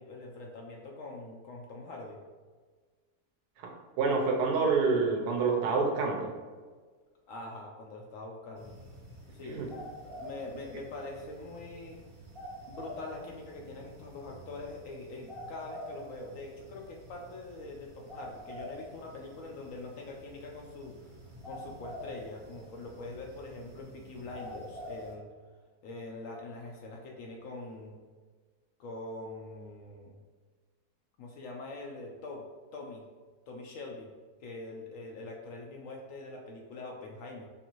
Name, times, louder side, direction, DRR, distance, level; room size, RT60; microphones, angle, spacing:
voice 1, 0.0-2.2 7.3-8.8 9.3-9.6 10.0-12.0 12.7-21.1 21.4-25.3 25.8-28.0 28.8-30.2 31.2-33.0 33.5-34.1 34.4-37.5, left 2 dB, 70° left, 0 dB, 0.8 m, -43 dB
voice 2, 3.6-6.3 9.4-9.7, right 4 dB, 85° right, 1 dB, 1.2 m, -28 dB
sound 1, 8.6-25.1, equal, 30° right, 0.6 m, -47 dB
5.4 x 2.5 x 3.0 m, 1.5 s
omnidirectional pair, 1.7 m